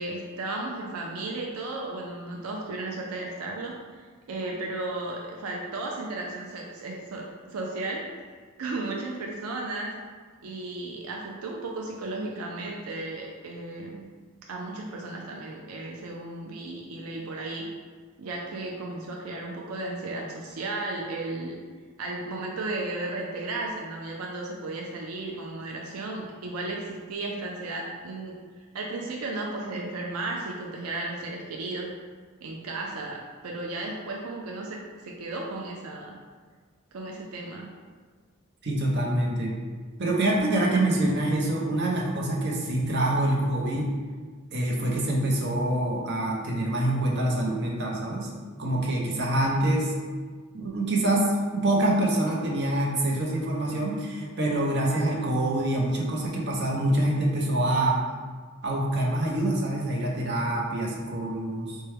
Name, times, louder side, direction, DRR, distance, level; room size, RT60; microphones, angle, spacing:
voice 1, 0.0-8.3 8.6-9.9 10.4-14.1 14.5-17.6 18.2-21.6 22.0-28.3 28.7-31.9 32.4-36.2 36.9-37.7, right 2 dB, 85° right, -2 dB, 0.5 m, -34 dB
voice 2, 38.6-39.6 40.0-43.9 44.5-48.3 48.6-49.9 50.5-58.0 58.6-61.8, right 1 dB, 50° right, -2 dB, 0.7 m, -25 dB
4.4 x 2.2 x 3.3 m, 1.5 s
head